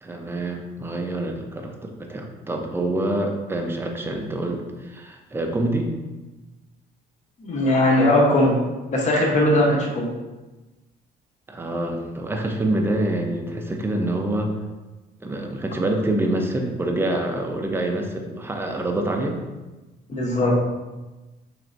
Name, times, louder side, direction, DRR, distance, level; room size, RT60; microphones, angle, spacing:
voice 1, 0.0-5.9 11.5-14.5 15.2-19.4, right 1 dB, 15° right, 2 dB, 0.5 m, -26 dB
voice 2, 7.4-8.6 8.9-10.1 20.1-20.5, left 1 dB, 45° left, -1 dB, 0.9 m, -19 dB
4.5 x 3.2 x 2.5 m, 1.2 s
cardioid pair, 110°, 17 cm